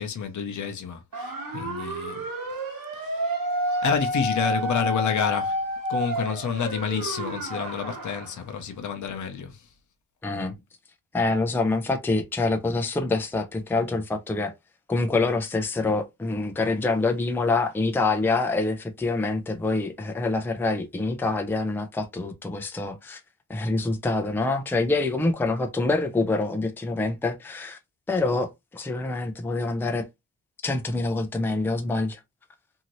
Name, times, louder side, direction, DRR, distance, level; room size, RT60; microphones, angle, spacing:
voice 1, 0.0-2.2 3.0-3.2 3.8-5.6 5.9-9.7, left 7 dB, 55° left, 0.7 m, -29 dB
sound 1, 1.1-8.3, right 1 dB, 75° right, 1.1 m, -30 dB
voice 2, 10.2-10.5 11.1-14.5 14.9-23.2 23.5-27.8 28.1-30.1 30.6-32.2, left 3 dB, 5° left, 0.4 m, -26 dB
2.8 x 2.6 x 2.9 m
wide cardioid pair, 150°, 35 cm